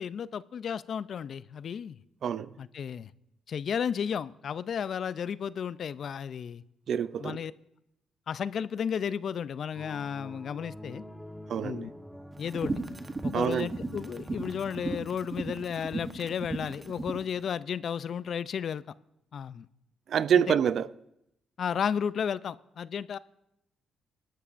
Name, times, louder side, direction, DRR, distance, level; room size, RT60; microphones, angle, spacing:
voice 1, 0.0-2.0 2.6-3.1 3.5-6.6 7.2-7.5 8.3-11.0 11.6-11.9 12.4-12.7 13.2-18.8 19.3-19.7 20.5-20.6 21.6-23.2, left 7 dB, 55° left, 0.4 m, -33 dB
voice 2, 6.9-7.4 11.5-11.9 13.3-13.7 20.1-20.9, right 8 dB, 60° right, 0.4 m, -26 dB
sound 1, 9.7-15.0, equal, ahead, 1.0 m, -46 dB
sound 2, 12.4-17.3, right 3 dB, 25° right, 1.0 m, -36 dB
19.0 x 12.0 x 2.5 m
cardioid pair, 90°, 0 cm